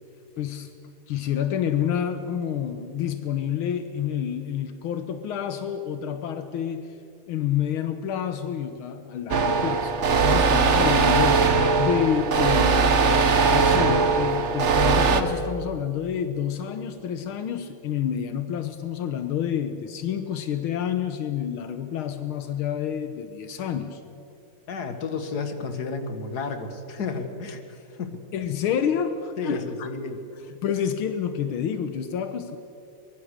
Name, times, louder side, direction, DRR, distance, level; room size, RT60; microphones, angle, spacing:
voice 1, 0.4-0.7 1.1-6.9 7.3-13.0 13.5-24.0 28.3-29.9 30.6-32.6, left 9 dB, 80° left, 9 dB, 1.8 m, -28 dB
sound 1, 9.3-15.2, right 4 dB, 40° right, 1.2 m, -20 dB
voice 2, 24.7-28.2 29.4-30.2, left 4 dB, 50° left, 7 dB, 2.2 m, -32 dB
23.5 x 21.5 x 6.6 m, 2.6 s
omnidirectional pair, 2.3 m